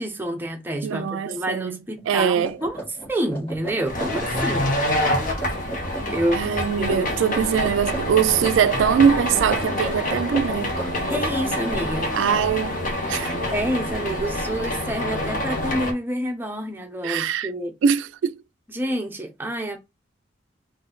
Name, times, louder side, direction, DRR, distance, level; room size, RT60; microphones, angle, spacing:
voice 1, 0.0-2.8 3.1-4.7 6.1-7.1 11.1-12.1 13.3-17.7 18.7-19.8, right 1 dB, 10° right, 0.7 m, -28 dB
voice 2, 0.8-1.8 2.1-2.6 6.3-10.9 12.1-12.8 13.1-13.4 17.0-17.5 17.8-18.4, right 7 dB, 80° right, 0.3 m, -22 dB
sound 1, 2.0-2.1 2.4-4.7 5.0-6.2 6.8-8.7 9.1-12.4, right 2 dB, 25° left, 1.8 m, -36 dB
sound 2, 3.9-15.9, left 1 dB, 45° left, 1.1 m, -26 dB
4.0 x 2.6 x 3.8 m
head